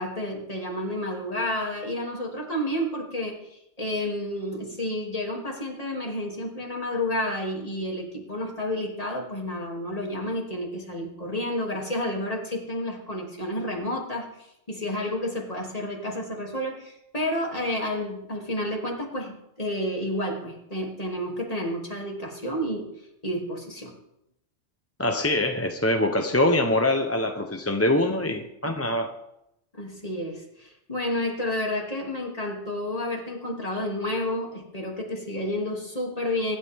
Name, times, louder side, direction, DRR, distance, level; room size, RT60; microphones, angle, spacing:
voice 1, 0.0-22.9 23.2-23.9 29.7-36.6, left 1 dB, 30° left, 0 dB, 3.0 m, -30 dB
voice 2, 25.0-29.2, left 1 dB, 15° left, 4 dB, 0.8 m, -24 dB
24.5 x 12.0 x 3.6 m, 0.82 s
omnidirectional pair, 1.2 m